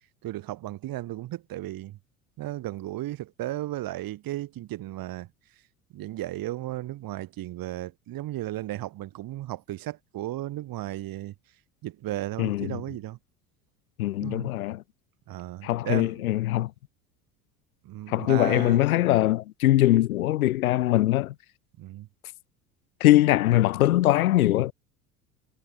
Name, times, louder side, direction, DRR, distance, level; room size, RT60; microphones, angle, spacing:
voice 1, 0.2-2.0 2.4-5.3 5.9-11.3 11.8-13.2 14.2-14.5 15.3-16.2 17.9-18.8 21.8-22.1, right 15 dB, 50° right, 6.9 m, -35 dB
voice 2, 12.4-12.8 14.0-14.8 15.6-16.7 18.1-21.3 23.0-24.7, left 15 dB, 75° left, 5.8 m, -22 dB
hypercardioid pair, 70°, 43 cm